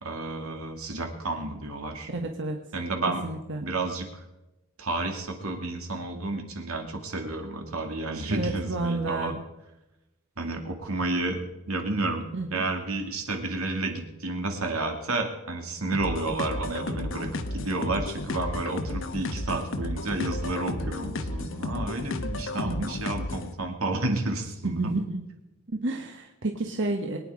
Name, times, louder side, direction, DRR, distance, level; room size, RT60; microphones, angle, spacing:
voice 1, 0.0-2.1 2.7-3.3 3.6-4.1 4.8-9.4 10.4-25.0, right 2 dB, 85° right, 3 dB, 2.4 m, -31 dB
voice 2, 2.1-2.6 3.2-3.6 8.3-9.4 12.3-12.7 22.6-22.9 24.6-25.2 25.8-27.2, right 2 dB, 60° right, 2 dB, 1.3 m, -30 dB
sound 1, 15.9-23.5, left 2 dB, 60° left, 1.0 m, -33 dB
22.5 x 9.6 x 4.9 m, 0.95 s
head